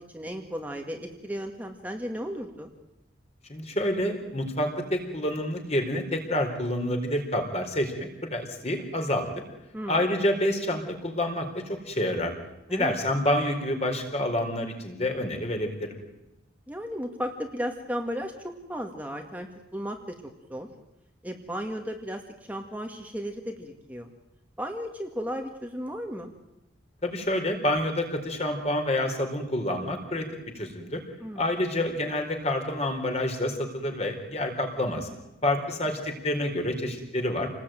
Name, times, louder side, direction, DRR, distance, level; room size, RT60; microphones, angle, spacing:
voice 1, 0.0-2.7 9.7-10.1 12.7-12.9 16.7-19.5 19.7-20.0 20.5-20.7 21.2-22.2 22.5-24.1 24.6-26.3 31.2-31.5 35.6-35.7, equal, 10° right, 3 dB, 2.0 m, -34 dB
voice 2, 3.5-9.3 9.9-12.3 12.7-16.0 27.0-30.3 30.5-31.0 31.4-35.1 35.4-37.5, left 1 dB, 30° left, 5 dB, 4.2 m, -28 dB
28.5 x 20.0 x 9.2 m, 0.97 s
head